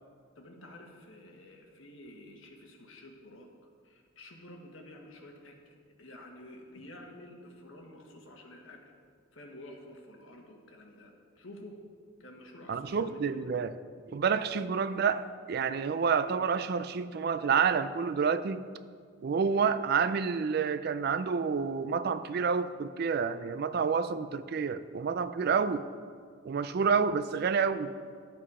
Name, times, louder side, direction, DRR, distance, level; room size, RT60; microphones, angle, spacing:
voice 1, 0.4-3.5 3.8-8.9 9.3-11.8 12.2-13.5 25.4-25.6, left 1 dB, 70° left, 2 dB, 1.4 m, -50 dB
voice 2, 12.7-13.7 14.1-18.7 19.2-25.8 26.5-27.9, right 6 dB, 50° right, 13 dB, 0.3 m, -29 dB
11.5 x 7.7 x 4.9 m, 2.1 s
head